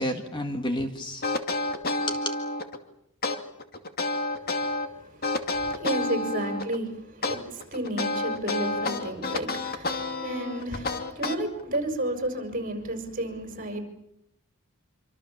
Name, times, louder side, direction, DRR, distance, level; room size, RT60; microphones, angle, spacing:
voice 1, 0.0-2.4, left 1 dB, 20° left, 6 dB, 1.9 m, -32 dB
sound 1, 1.2-2.8 3.2-4.9 5.2-6.8 7.2-11.8, left 2 dB, 45° left, 2.5 m, -29 dB
voice 2, 4.4-13.8, right 1 dB, 40° right, 6 dB, 6.2 m, -32 dB
27.0 x 26.0 x 7.3 m, 0.77 s
head